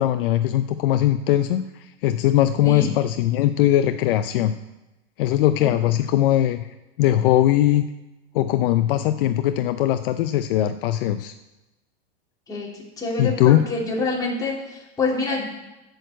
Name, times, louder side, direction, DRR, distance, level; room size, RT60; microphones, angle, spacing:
voice 1, 0.0-1.6 2.0-4.6 5.2-6.6 7.0-7.8 8.3-11.3 13.2-13.6, left 12 dB, 60° left, 9 dB, 0.6 m, -20 dB
voice 2, 13.0-15.5, left 3 dB, 10° left, -4 dB, 3.0 m, -26 dB
11.0 x 6.5 x 8.0 m, 1.0 s
supercardioid pair, 140°, 31 cm